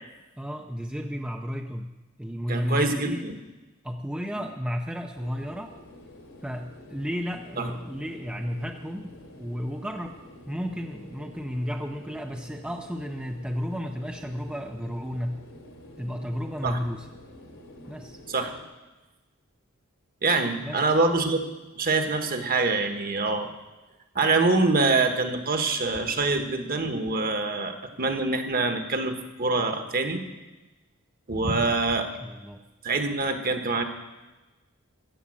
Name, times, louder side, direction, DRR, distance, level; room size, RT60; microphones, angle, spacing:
voice 1, 0.4-1.9 2.2-3.3 3.8-5.7 6.4-10.2 10.5-15.4 16.0-17.1 17.9-18.2 20.6-20.8 31.4-31.8 32.2-32.6, equal, 5° right, 3 dB, 0.6 m, -33 dB
voice 2, 2.5-3.4 4.3-4.4 7.6-7.7 16.6-16.8 18.3-18.5 20.2-21.4 21.8-23.5 24.1-30.2 31.3-32.1 32.8-33.8, right 3 dB, 45° right, 6 dB, 1.3 m, -25 dB
sound 1, 5.1-18.6, left 1 dB, 80° left, 3.0 m, -48 dB
14.0 x 7.2 x 8.6 m, 1.1 s
head